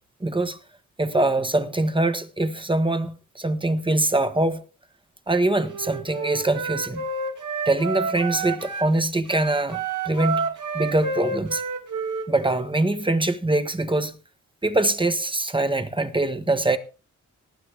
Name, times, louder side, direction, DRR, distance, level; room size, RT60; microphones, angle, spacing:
voice 1, 0.2-0.6 1.0-4.6 5.3-7.0 7.6-10.5 10.7-11.6 12.3-14.1 14.6-16.8, right 2 dB, 15° right, 1.3 m, -23 dB
Wind instrument woodwind instrument, 5.6-8.9 9.3-12.7, right 4 dB, 75° right, 2.5 m, -29 dB
19.0 x 8.6 x 3.5 m
wide cardioid pair, 100°, 31 cm